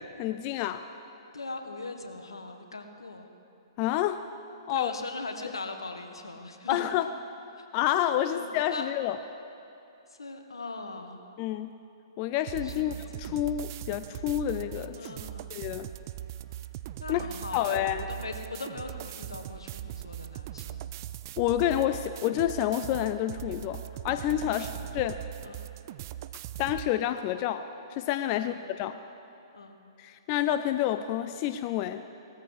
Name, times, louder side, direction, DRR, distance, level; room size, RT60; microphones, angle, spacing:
voice 1, 0.2-0.8 3.8-4.2 4.7-4.9 6.7-7.1 7.7-9.2 11.4-11.7 12.2-15.1 15.5-15.9 17.1-17.2 17.5-18.1 21.4-25.2 26.6-29.0 30.0-32.0, left 12 dB, 35° left, 10 dB, 0.5 m, -29 dB
voice 2, 1.3-3.3 4.7-6.8 7.6-7.7 8.3-8.9 10.1-11.2 12.6-13.3 14.9-15.5 17.0-20.9 24.3-25.0 25.4-25.6 28.3-28.6 29.5-29.8, left 3 dB, 80° left, 6 dB, 1.4 m, -40 dB
sound 1, 12.5-26.9, right 13 dB, 45° right, 0.5 m, -40 dB
18.5 x 14.0 x 4.8 m, 2.8 s
figure-of-eight pair, 120°, 2 cm